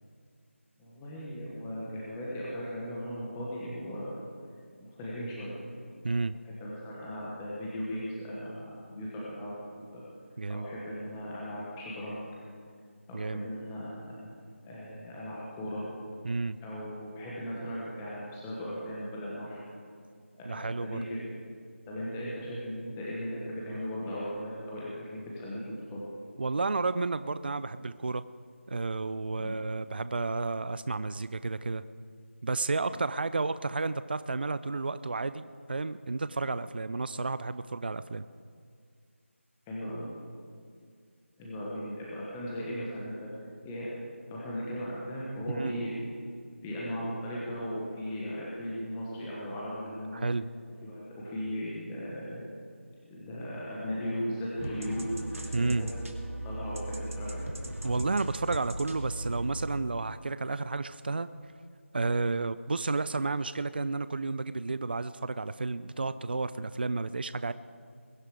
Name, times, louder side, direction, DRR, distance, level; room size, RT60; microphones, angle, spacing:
voice 1, 0.8-4.1 4.8-10.0 10.5-12.2 13.1-14.3 14.6-15.8 16.6-19.6 20.3-21.4 21.9-26.0 29.4-29.5 32.9-33.0 39.7-40.1 41.4-43.3 43.6-43.9 44.3-46.0 46.6-50.3 50.8-52.4 53.0-56.1 56.4-57.5, equal, 10° left, -6 dB, 1.3 m, -37 dB
voice 2, 13.1-13.5 16.2-16.6 20.5-21.0 26.4-28.2 28.7-31.8 32.4-38.2 45.5-45.8 50.1-50.5 55.5-55.9 57.8-61.3 61.9-67.5, right 3 dB, 45° right, 14 dB, 0.4 m, -31 dB
sound 1, 54.6-59.8, right 1 dB, 85° right, 2.4 m, -38 dB
21.5 x 10.0 x 4.9 m, 2.2 s
figure-of-eight pair, 170°, 7 cm